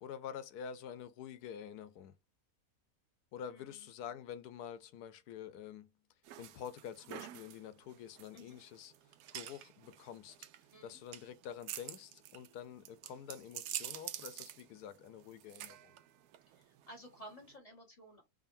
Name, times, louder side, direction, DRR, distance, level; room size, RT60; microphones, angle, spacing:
voice 1, 0.0-2.1 3.3-5.9 6.4-8.9 9.3-10.4 10.8-15.9, left 8 dB, 90° left, 1.2 m, -47 dB
voice 2, 3.5-3.9 8.3-8.6 10.7-11.0 16.5-18.2, equal, 25° left, 1.6 m, -54 dB
sound 1, 6.2-17.5, right 12 dB, 85° right, 1.1 m, -48 dB
4.9 x 2.7 x 2.5 m
omnidirectional pair, 1.6 m